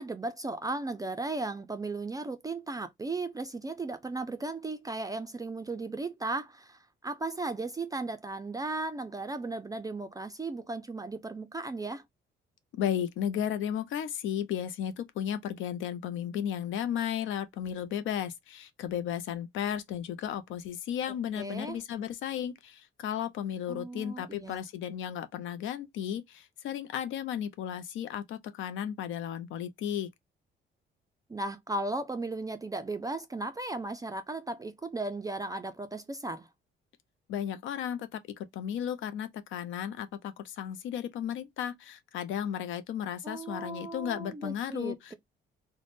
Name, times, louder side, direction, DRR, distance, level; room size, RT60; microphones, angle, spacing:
voice 1, 0.0-12.0 21.3-21.8 23.7-24.7 31.3-36.5 43.2-45.1, right 2 dB, 20° right, 0.3 m, -36 dB
voice 2, 12.7-30.1 37.3-38.2 38.5-45.1, left 9 dB, 80° left, 0.4 m, -34 dB
2.5 x 2.1 x 3.2 m
cardioid pair, 90°, 20 cm